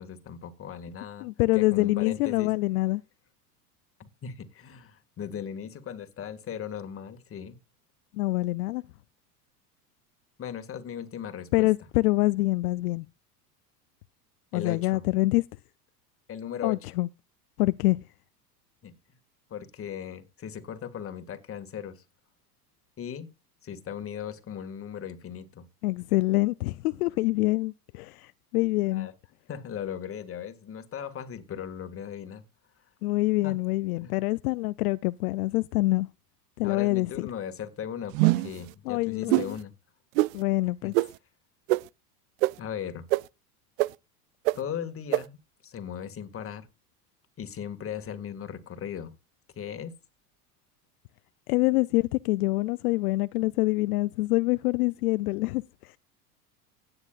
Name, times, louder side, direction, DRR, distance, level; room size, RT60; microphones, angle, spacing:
voice 1, 0.0-1.3 1.5-2.5 4.2-7.6 10.4-11.7 14.5-15.0 16.3-16.8 18.8-18.9 19.5-22.0 23.0-23.3 23.6-25.6 28.9-29.1 29.5-32.4 33.4-33.6 34.0-34.2 36.6-39.7 40.8-40.9 42.6-43.1 44.6-46.7 47.4-49.1 49.6-49.9, left 8 dB, 30° left, 2.1 m, -37 dB
voice 2, 1.2-3.0 8.1-8.8 11.5-13.1 14.5-15.4 16.6-17.1 17.6-18.0 25.8-29.1 33.0-36.1 36.6-37.3 38.9-39.6 40.3-40.9 51.5-56.0, left 20 dB, 70° left, 0.6 m, -25 dB
sound 1, 38.1-38.6 39.3-39.5 40.2-40.3 40.9-41.1 41.7-41.8 42.4-42.5 43.1-43.2 43.8-43.9 44.5-44.6 45.1-45.2, right 22 dB, 55° right, 0.5 m, -22 dB
16.5 x 9.7 x 2.5 m
hypercardioid pair, 100°, 47 cm